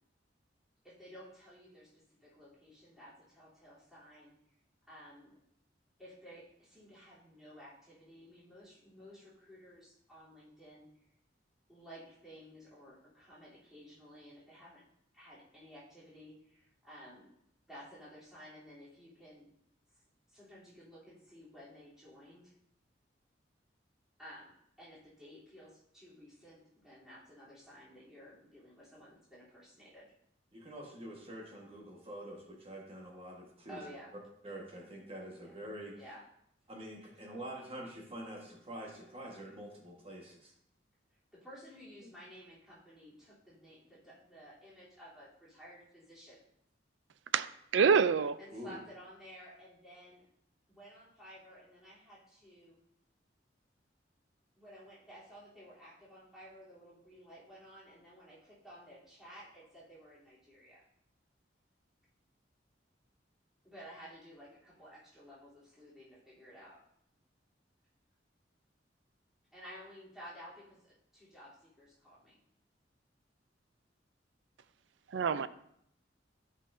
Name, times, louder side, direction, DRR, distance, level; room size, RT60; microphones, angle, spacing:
voice 1, 0.8-4.3 4.9-5.3 6.0-10.9 11.7-14.8 15.1-17.3 17.7-19.5 20.3-22.5 24.2-30.1 33.7-34.1 35.4-35.5 35.9-36.2 41.3-46.4 48.4-50.2 50.7-52.8 54.6-60.8 63.6-66.8 69.5-72.4, equal, 5° right, -11 dB, 3.3 m, -54 dB
voice 2, 30.5-33.8 34.4-36.0 36.7-40.5 48.5-48.8, right 1 dB, 30° right, -1 dB, 1.5 m, -46 dB
voice 3, 47.3-48.4 75.1-75.5, right 6 dB, 80° right, 14 dB, 0.4 m, -27 dB
12.5 x 5.6 x 2.7 m, 0.73 s
head